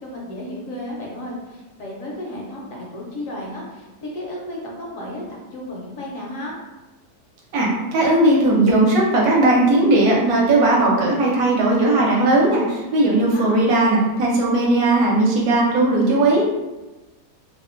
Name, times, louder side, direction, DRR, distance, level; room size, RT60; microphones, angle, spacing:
voice 1, 0.0-6.5 13.2-13.6, left 1 dB, 70° left, -3 dB, 0.8 m, -33 dB
voice 2, 7.5-16.4, right 2 dB, 75° right, -2 dB, 1.1 m, -17 dB
2.7 x 2.1 x 2.4 m, 1.1 s
omnidirectional pair, 1.7 m